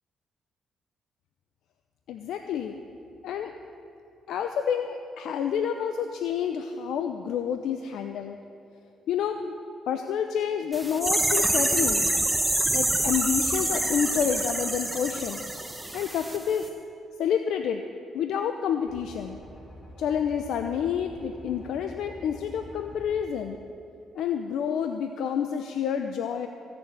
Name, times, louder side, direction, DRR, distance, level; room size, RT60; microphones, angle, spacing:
voice 1, 2.1-2.8 3.2-3.5 4.3-8.4 9.1-9.5 9.9-12.1 12.7-15.4 15.9-16.7 17.2-17.9 18.1-19.4 20.0-23.6 24.1-26.5, left 8 dB, 80° left, 6 dB, 0.7 m, -29 dB
sound 1, 10.7-16.4 16.6-16.7, right 1 dB, 10° right, 1.2 m, -26 dB
sound 2, 18.9-23.2, equal, 45° left, 3.3 m, -47 dB
16.0 x 6.9 x 9.2 m, 2.7 s
cardioid pair, 90°, 0 cm